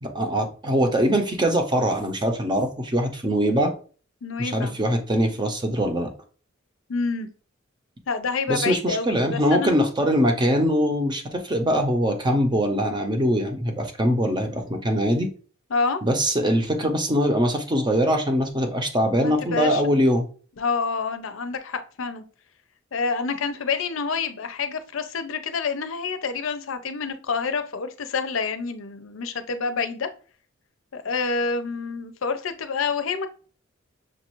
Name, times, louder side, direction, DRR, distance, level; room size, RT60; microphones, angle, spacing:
voice 1, 0.0-3.7 4.4-6.1 8.5-15.3 16.0-20.3, equal, 20° right, 0.7 m, -22 dB
voice 2, 4.2-4.8 6.9-7.3 8.1-9.8 15.7-16.0 19.2-19.8 20.6-22.3 22.9-30.1 30.9-33.3, left 4 dB, 70° left, 0.5 m, -28 dB
6.2 x 2.5 x 3.0 m
head